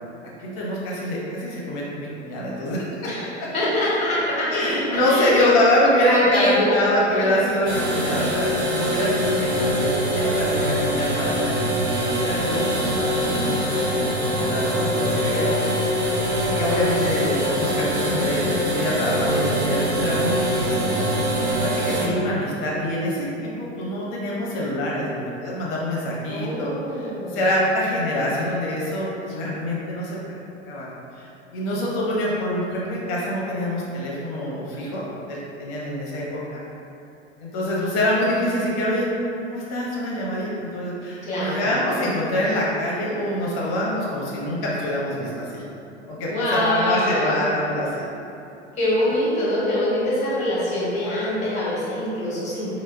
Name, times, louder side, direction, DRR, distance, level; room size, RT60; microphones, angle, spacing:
voice 1, 0.4-3.1 3.4-3.5 4.5-11.5 12.1-15.7 16.4-21.0 21.4-30.2 30.7-30.9 31.1-35.0 35.3-36.6 37.4-39.1 39.5-45.6 46.1-48.0, left 1 dB, 40° left, -5 dB, 0.8 m, -25 dB
voice 2, 3.0-5.5 5.8-6.7 7.1-7.2 26.3-27.4 41.2-41.7 46.3-47.6 48.8-52.8, left 1 dB, 20° left, -8 dB, 1.0 m, -24 dB
sound 1, 7.7-22.1, equal, 60° right, 0.8 m, -23 dB
4.3 x 2.1 x 2.2 m, 2.8 s
figure-of-eight pair, 90°, 35 cm